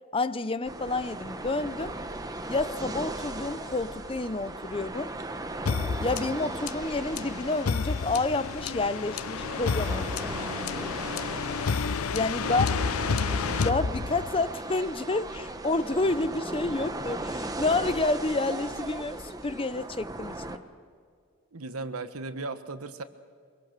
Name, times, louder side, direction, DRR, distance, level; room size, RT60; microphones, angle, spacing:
voice 1, 0.1-1.9 2.5-5.1 6.0-10.1 12.1-12.7 13.6-20.7, left 3 dB, 25° left, 14 dB, 0.6 m, -29 dB
sound 1, 0.6-20.6, right 2 dB, 15° right, 1.0 m, -37 dB
sound 2, 5.7-14.5, left 5 dB, 80° left, 0.6 m, -30 dB
voice 2, 12.4-13.2 21.5-23.0, right 3 dB, 90° right, 10 dB, 1.3 m, -37 dB
24.5 x 23.0 x 6.7 m, 2.2 s
head